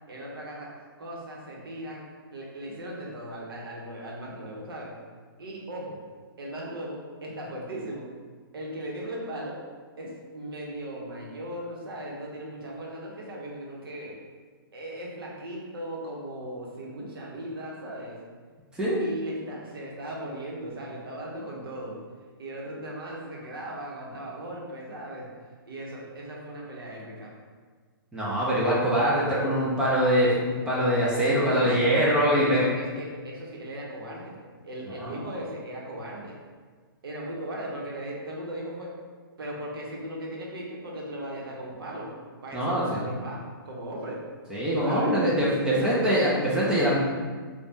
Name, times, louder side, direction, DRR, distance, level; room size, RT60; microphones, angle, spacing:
voice 1, 0.1-0.7 1.0-5.0 5.4-6.0 6.4-8.1 8.5-9.6 10.0-14.2 14.7-18.2 19.0-22.0 22.4-25.3 25.7-27.3 31.3-31.9 32.2-34.3 34.6-36.4 37.0-38.9 39.4-42.1 42.4-44.2 44.8-45.2 45.6-46.2, right 1 dB, 75° right, -3 dB, 0.8 m, -37 dB
voice 2, 28.1-32.7 35.0-35.2 42.5-43.1 44.5-47.0, equal, 5° right, -8 dB, 0.4 m, -23 dB
3.3 x 2.2 x 2.6 m, 1.5 s
hypercardioid pair, 145°, 12 cm